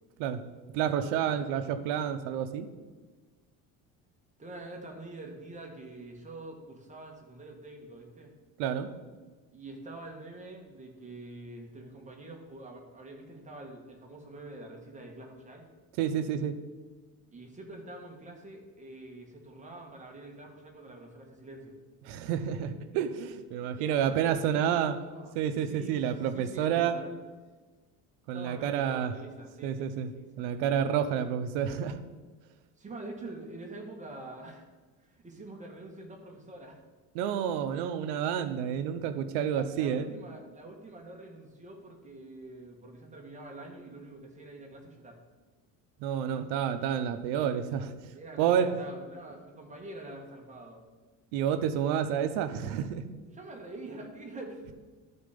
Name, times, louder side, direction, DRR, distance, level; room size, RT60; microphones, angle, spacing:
voice 1, 0.7-2.7 8.6-8.9 16.0-16.5 22.0-25.0 25.3-26.9 28.3-29.1 29.6-30.1 30.4-32.0 37.1-40.1 46.0-47.9 48.4-48.7 51.3-53.1, right 9 dB, 90° right, 10 dB, 0.8 m, -29 dB
voice 2, 4.4-8.3 9.5-15.6 17.3-21.8 23.8-26.0 26.3-27.1 28.3-30.4 32.8-34.6 35.1-36.8 39.4-45.2 48.1-50.8 53.3-54.7, right 2 dB, 20° right, 1 dB, 1.6 m, -45 dB
12.5 x 4.4 x 5.2 m, 1.3 s
cardioid pair, 130°, 38 cm